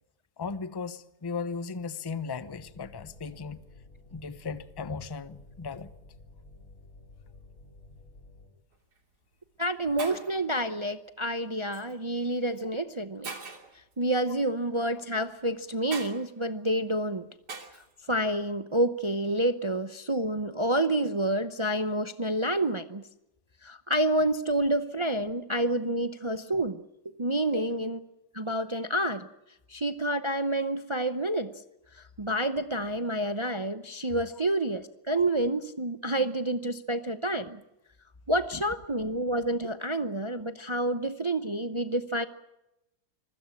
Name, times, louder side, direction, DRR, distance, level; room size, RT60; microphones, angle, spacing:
voice 1, 0.4-3.6 4.1-5.9 27.5-27.6 38.5-38.6, left 5 dB, 25° left, 0.6 m, -36 dB
sound 1, 2.5-8.5, left 2 dB, 55° left, 4.5 m, -52 dB
Shatter, 8.8-9.0 9.7-9.8 10.0-10.4 11.7-11.9 12.6-12.7 13.2-13.8 15.9-16.2 17.5-17.9, right 4 dB, 75° right, 3.4 m, -40 dB
voice 2, 9.6-13.3 14.0-17.3 18.1-23.0 23.6-26.8 27.2-28.0 28.3-29.3 29.7-31.5 31.9-37.6 38.3-42.2, right 1 dB, 30° right, 0.5 m, -28 dB
25.0 x 16.5 x 8.5 m
omnidirectional pair, 1.7 m